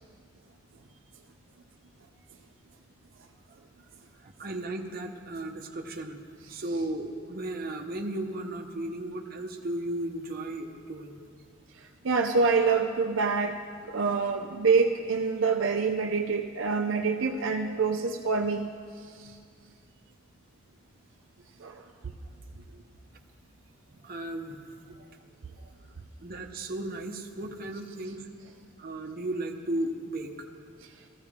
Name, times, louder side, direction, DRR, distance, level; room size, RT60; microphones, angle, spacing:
voice 1, 4.2-6.2 6.5-11.2 23.9-24.7 26.2-28.3 28.8-30.3, right 1 dB, 50° right, 3 dB, 1.0 m, -35 dB
voice 2, 12.0-13.6 13.9-18.7 21.6-21.7, right 4 dB, 75° right, 3 dB, 0.6 m, -26 dB
16.5 x 14.5 x 3.6 m, 2.2 s
head